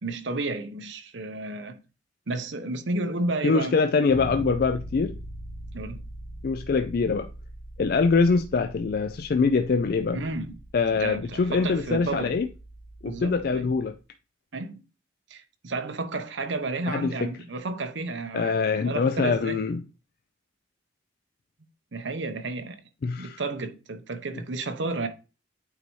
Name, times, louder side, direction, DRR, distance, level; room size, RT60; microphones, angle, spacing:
voice 1, 0.0-1.8 2.3-3.7 5.7-6.0 10.1-10.6 10.9-12.4 13.0-13.7 14.5-14.8 15.3-19.6 21.9-22.8 23.2-25.1, right 2 dB, 70° right, 0.8 m, -32 dB
voice 2, 3.4-5.1 6.4-7.3 7.8-10.2 10.7-12.5 13.0-13.9 16.9-17.1 18.3-19.8 23.0-23.4, left 4 dB, 50° left, 0.3 m, -24 dB
Bass guitar, 4.1-13.9, equal, 10° right, 1.6 m, -42 dB
8.4 x 4.0 x 3.0 m
head